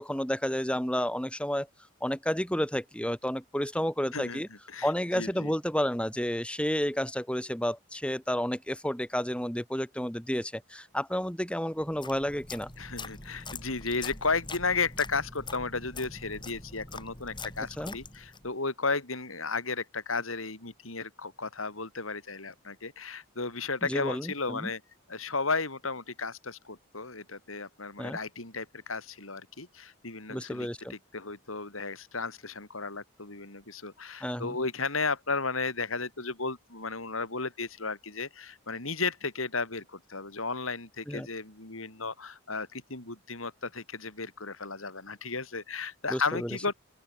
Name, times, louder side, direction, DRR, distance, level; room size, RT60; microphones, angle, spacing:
voice 1, 0.0-1.7 2.0-4.5 4.8-12.7 17.8-18.0 23.8-24.7 28.0-28.2 30.3-30.9 34.2-34.6 41.1-41.3 46.1-46.6, equal, 5° left, 5.6 m, -31 dB
voice 2, 4.7-5.5 12.8-24.8 25.1-46.7, left 4 dB, 85° left, 4.7 m, -34 dB
sound 1, 11.8-18.5, left 3 dB, 25° left, 6.3 m, -43 dB
open air
head